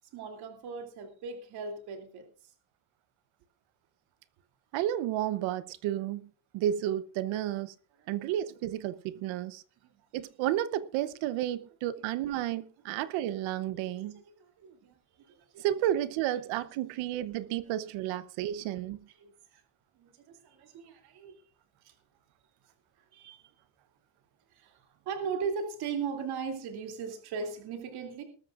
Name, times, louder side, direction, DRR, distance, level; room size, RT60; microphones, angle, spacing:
voice 1, 0.1-2.3 8.0-8.2 9.2-9.3 9.9-10.1 11.2-11.3 12.9-13.0 13.6-15.0 15.3-15.7 18.4-18.5 19.2-19.6 19.9-21.3 21.8-21.9 23.1-23.5 24.5-28.2, right 5 dB, 50° right, 3.0 m, -39 dB
voice 2, 4.7-6.3 6.5-7.7 8.1-9.6 10.1-14.2 15.6-19.0, right 12 dB, 70° right, 1.0 m, -32 dB
20.0 x 13.5 x 2.5 m
cardioid pair, 175°, 48 cm